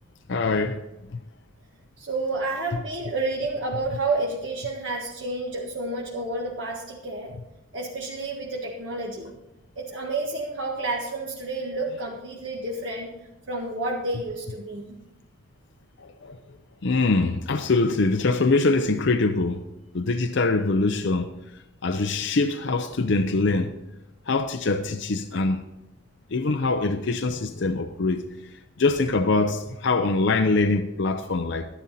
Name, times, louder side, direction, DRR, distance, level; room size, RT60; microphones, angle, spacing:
voice 1, 0.3-0.8 16.0-16.4 16.8-19.6 19.9-21.3 21.8-23.7 24.3-25.7 26.3-28.3 28.8-31.7, left 3 dB, 60° left, 0.6 m, -23 dB
voice 2, 2.0-7.3 7.7-9.3 9.7-13.1 13.5-15.0, right 2 dB, 65° right, 1.7 m, -30 dB
12.0 x 11.0 x 4.2 m
head